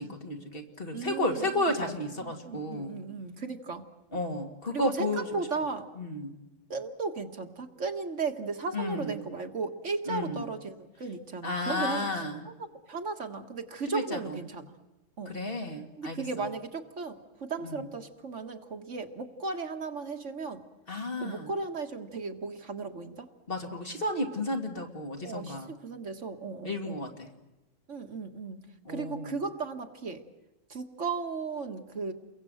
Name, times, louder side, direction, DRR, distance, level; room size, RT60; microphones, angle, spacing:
voice 1, 0.0-3.0 4.1-5.5 6.0-6.4 8.7-9.2 10.1-10.4 11.4-12.5 13.9-14.4 15.3-16.5 17.6-17.9 20.9-21.5 23.5-25.8 26.6-27.3 28.9-29.4, left 1 dB, 45° left, 3 dB, 2.6 m, -33 dB
voice 2, 0.9-3.8 4.7-5.9 6.7-12.1 12.5-12.6 12.9-14.7 15.2-15.3 16.0-20.6 21.2-23.3 25.2-27.0 27.9-30.2 30.7-32.1, right 4 dB, 70° right, 5 dB, 2.0 m, -36 dB
29.5 x 23.0 x 7.9 m, 0.99 s
omnidirectional pair, 1.3 m